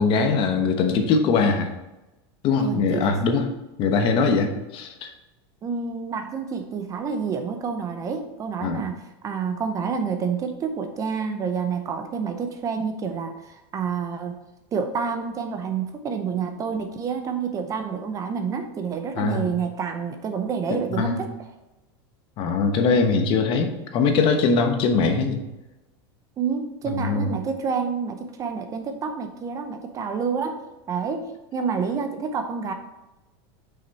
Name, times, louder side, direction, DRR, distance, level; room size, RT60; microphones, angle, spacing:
voice 1, 0.0-1.7 2.4-3.5 3.8-5.1 8.6-8.8 19.2-19.5 20.7-21.2 22.4-25.4 26.9-27.4, left 4 dB, 40° left, 6 dB, 1.0 m, -22 dB
voice 2, 2.6-3.2 5.6-14.4 14.7-21.3 26.4-30.6 30.9-32.7, right 6 dB, 25° right, 7 dB, 0.7 m, -28 dB
6.3 x 5.7 x 4.1 m, 1.0 s
supercardioid pair, 145°, 13 cm